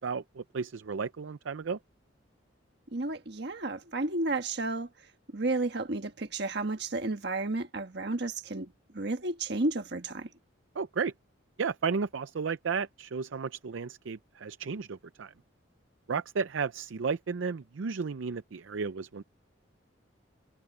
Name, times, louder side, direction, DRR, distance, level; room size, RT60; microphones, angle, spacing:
voice 1, 0.0-1.8 10.8-11.1 11.6-15.3 16.1-19.2, right 5 dB, 80° right, 0.5 m, -33 dB
voice 2, 2.9-10.3, right 2 dB, 60° right, 1.5 m, -32 dB
head